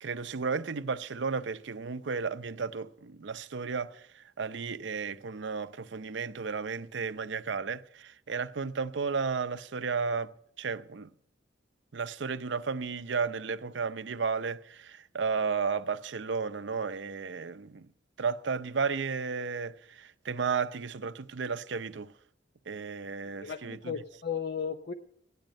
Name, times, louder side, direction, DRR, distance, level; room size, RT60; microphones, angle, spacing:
voice 1, 0.0-4.0 4.4-10.3 10.6-11.1 11.9-17.9 18.2-22.1 22.7-23.9, right 5 dB, 75° right, 0.6 m, -33 dB
voice 2, 23.4-24.9, left 7 dB, 65° left, 0.7 m, -35 dB
16.5 x 10.5 x 5.2 m
head